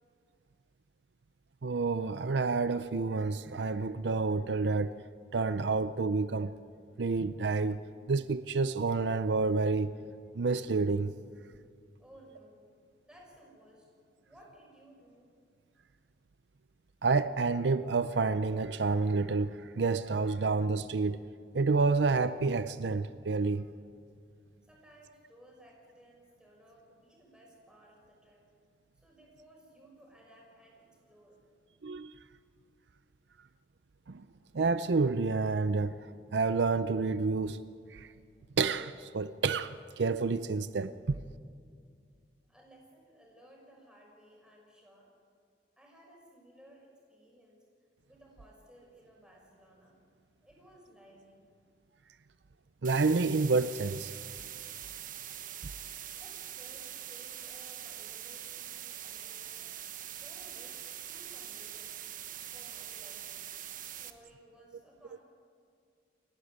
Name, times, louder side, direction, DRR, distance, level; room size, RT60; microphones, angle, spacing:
voice 1, 1.6-4.9 5.3-6.5 7.0-7.8 8.1-9.9 10.3-11.1 17.0-21.2 21.5-23.6 31.8-32.2 34.1-34.2 34.5-36.0 36.3-37.6 37.9-38.1 38.6-41.2 52.8-54.1, right 4 dB, 70° right, 0.6 m, -29 dB
voice 2, 12.0-12.7 13.0-13.9 14.2-15.3 24.7-28.5 28.9-31.4 42.4-45.1 45.8-47.6 48.0-50.0 50.4-51.5 56.1-59.8 60.2-62.0 62.5-63.5 63.9-65.2, equal, 5° right, 6.4 m, -58 dB
sound 1, 52.8-64.1, right 11 dB, 50° right, 1.2 m, -43 dB
29.0 x 11.5 x 9.7 m
head